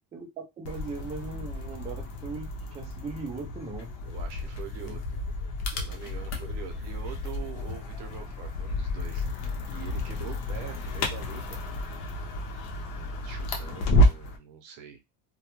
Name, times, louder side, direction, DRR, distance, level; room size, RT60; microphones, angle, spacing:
voice 1, 0.0-3.9 4.8-5.0, right 4 dB, 20° right, 1 dB, 0.3 m, -39 dB
sound 1, 0.6-14.4, left 1 dB, 70° left, 0.7 m, -30 dB
voice 2, 4.0-5.2 5.6-11.6 13.2-15.0, right 9 dB, 80° right, 5 dB, 0.7 m, -44 dB
2.2 x 2.2 x 2.9 m, 0.23 s
cardioid pair, 150°, 41 cm